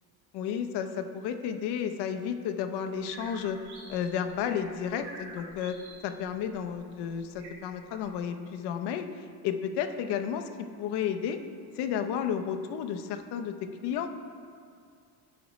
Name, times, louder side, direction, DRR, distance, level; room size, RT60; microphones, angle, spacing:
voice 1, 0.3-3.6 3.9-9.1 9.4-10.5 10.8-11.4 11.7-13.5 13.8-14.1, left 8 dB, 75° left, 7 dB, 0.7 m, -32 dB
sound 1, 2.9-8.2, right 2 dB, 75° right, 2.1 m, -48 dB
14.0 x 5.1 x 3.1 m, 2.2 s
cardioid pair, 165°, 41 cm